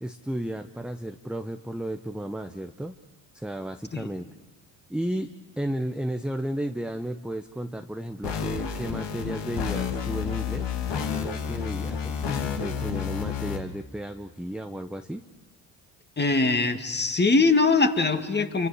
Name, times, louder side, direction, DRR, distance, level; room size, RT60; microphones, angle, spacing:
voice 1, 0.0-3.0 3.3-4.3 4.9-15.2, right 1 dB, ahead, 7 dB, 0.9 m, -33 dB
sound 1, 8.2-13.6, left 7 dB, 55° left, 2.8 m, -30 dB
voice 2, 16.2-18.7, left 3 dB, 20° left, 7 dB, 2.2 m, -22 dB
28.5 x 24.0 x 6.7 m, 1.2 s
hypercardioid pair, 60°, 49 cm